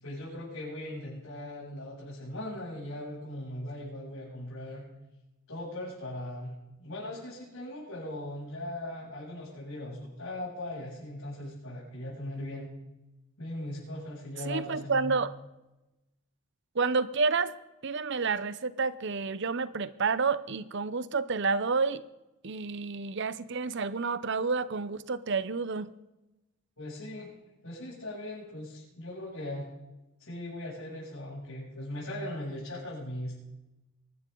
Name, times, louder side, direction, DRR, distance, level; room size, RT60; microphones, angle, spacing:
voice 1, 0.0-4.8 5.5-12.7 13.4-15.1 26.8-27.3 27.6-29.7 30.2-33.4, left 1 dB, 75° left, -9 dB, 7.4 m, -39 dB
voice 2, 14.4-15.3 16.7-17.6 17.8-22.0 22.4-25.9, right 4 dB, 55° right, 16 dB, 0.7 m, -29 dB
24.0 x 12.5 x 3.9 m, 0.99 s
head